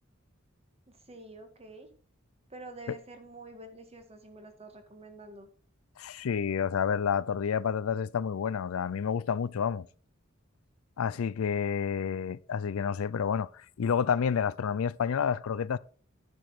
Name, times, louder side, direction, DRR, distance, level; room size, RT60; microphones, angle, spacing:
voice 1, 1.1-1.9 2.5-5.5, right 2 dB, 30° right, 1.7 m, -47 dB
voice 2, 6.0-9.9 11.0-13.5 13.8-15.8, left 7 dB, 90° left, 0.4 m, -29 dB
9.5 x 6.2 x 4.9 m
head